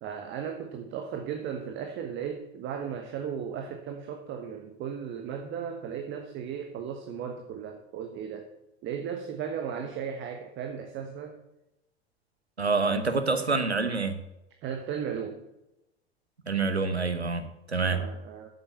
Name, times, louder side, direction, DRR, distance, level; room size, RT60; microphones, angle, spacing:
voice 1, 0.0-8.5 8.8-11.4 14.6-15.4 17.9-18.5, right 7 dB, 35° right, 5 dB, 1.4 m, -36 dB
voice 2, 12.6-14.2 16.5-18.0, right 4 dB, 90° right, 8 dB, 1.1 m, -27 dB
8.3 x 7.8 x 7.8 m, 0.91 s
figure-of-eight pair, 80°, 31 cm